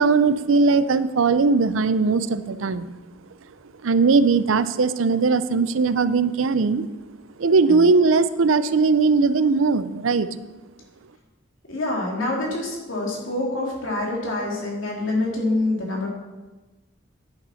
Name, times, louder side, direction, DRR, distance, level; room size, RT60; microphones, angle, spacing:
voice 1, 0.0-2.9 3.8-6.9 7.4-10.3, right 4 dB, 90° right, 13 dB, 0.5 m, -19 dB
voice 2, 11.7-16.1, left 2 dB, 85° left, -2 dB, 2.8 m, -26 dB
10.5 x 6.9 x 5.7 m, 1.2 s
head